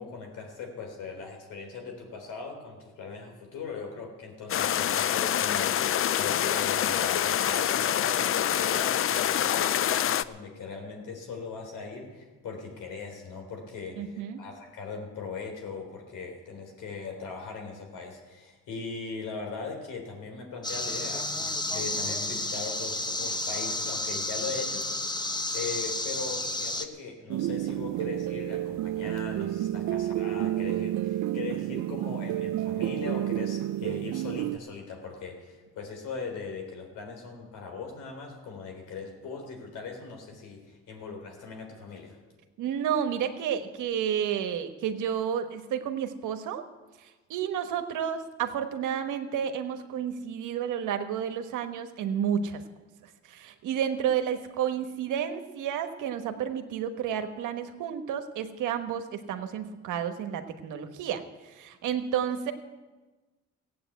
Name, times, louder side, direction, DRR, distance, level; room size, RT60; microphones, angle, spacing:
voice 1, 0.0-25.2 25.5-42.2, left 4 dB, 85° left, 2 dB, 3.7 m, -39 dB
sound 1, 4.5-10.2, left 10 dB, 45° left, 0.5 m, -26 dB
voice 2, 14.0-14.4 42.6-46.6 47.3-52.6 53.3-62.5, right 8 dB, 85° right, 8 dB, 1.3 m, -31 dB
sound 2, 20.6-26.9, left 2 dB, 15° left, 1.1 m, -31 dB
sound 3, 27.3-34.6, right 13 dB, 70° right, 0.5 m, -30 dB
16.0 x 8.5 x 8.2 m, 1.2 s
cardioid pair, 90°, 30 cm